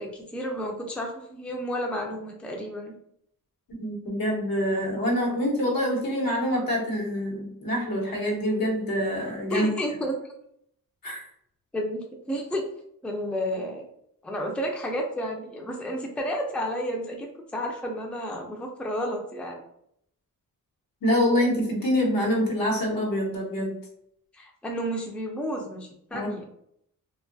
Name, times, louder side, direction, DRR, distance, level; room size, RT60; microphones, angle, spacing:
voice 1, 0.0-2.9 9.5-10.2 11.7-12.7 13.0-13.8 14.2-19.6 24.3-26.4, equal, 5° left, 1 dB, 0.4 m, -31 dB
voice 2, 3.7-9.7 11.0-11.3 21.0-23.7 26.1-26.3, equal, 85° left, -3 dB, 1.0 m, -26 dB
2.5 x 2.3 x 2.5 m, 0.71 s
wide cardioid pair, 100°, 34 cm